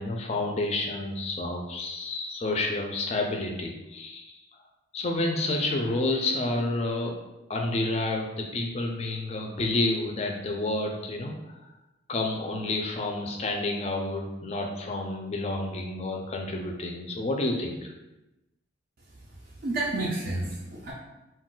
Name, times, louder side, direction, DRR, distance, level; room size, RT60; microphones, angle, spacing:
voice 1, 0.0-4.4 4.9-7.2 7.5-11.3 12.1-17.9, left 2 dB, 35° left, 2 dB, 0.4 m, -29 dB
voice 2, 19.3-20.9, right 2 dB, 45° right, -4 dB, 0.4 m, -31 dB
2.2 x 2.2 x 3.7 m, 0.99 s
head